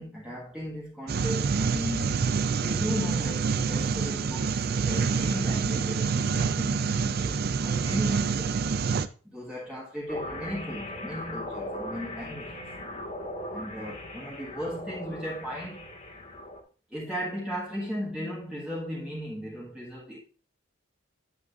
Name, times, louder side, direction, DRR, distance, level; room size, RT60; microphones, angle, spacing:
voice 1, 0.0-2.2 2.6-8.5 9.2-12.6 13.5-15.9 16.9-20.2, equal, 5° right, 1.5 m, -36 dB
sound 1, 1.1-9.1, right 5 dB, 50° right, 0.4 m, -27 dB
sound 2, 10.1-16.6, left 1 dB, 40° left, 1.7 m, -39 dB
9.4 x 8.5 x 2.5 m
head